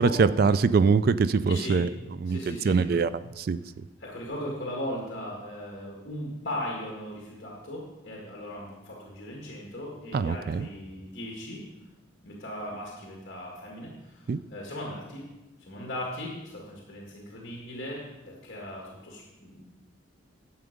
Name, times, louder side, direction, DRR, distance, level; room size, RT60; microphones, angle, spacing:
voice 1, 0.0-1.9 2.2-3.1 3.4-3.6 10.1-10.7 14.3-14.4, right 5 dB, 45° right, 14 dB, 0.3 m, -23 dB
voice 2, 1.5-1.8 2.3-2.8 4.0-11.6 12.2-15.2 15.6-19.7, left 1 dB, 50° left, -2 dB, 1.8 m, -38 dB
11.0 x 7.0 x 5.1 m, 1.1 s
head